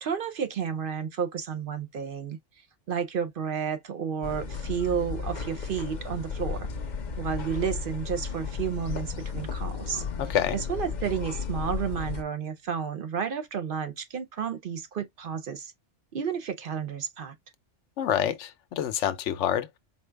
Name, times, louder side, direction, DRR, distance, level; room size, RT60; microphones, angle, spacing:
voice 1, 0.0-2.4 2.9-6.7 7.2-15.7 16.1-17.3, right 7 dB, 60° right, 0.6 m, -31 dB
sound 1, 4.2-12.2, left 5 dB, 45° left, 0.7 m, -34 dB
voice 2, 10.2-10.6 18.0-19.8, left 10 dB, 80° left, 1.0 m, -27 dB
4.4 x 2.3 x 3.2 m
omnidirectional pair, 1.2 m